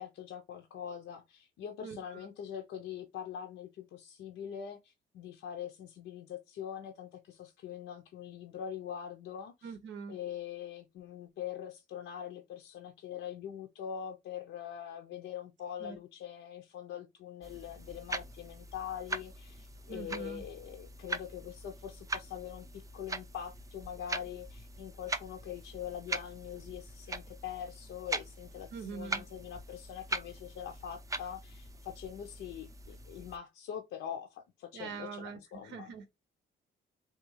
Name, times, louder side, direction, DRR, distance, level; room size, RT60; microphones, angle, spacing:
voice 1, 0.0-9.8 10.1-35.9, left 9 dB, 80° left, 0.6 m, -43 dB
voice 2, 9.6-10.2 15.8-16.0 19.9-20.4 28.7-29.2 34.7-36.1, right 6 dB, 75° right, 0.6 m, -43 dB
sound 1, 17.4-33.4, right 2 dB, 15° right, 0.4 m, -42 dB
3.6 x 2.3 x 2.9 m
cardioid pair, 90°, 20 cm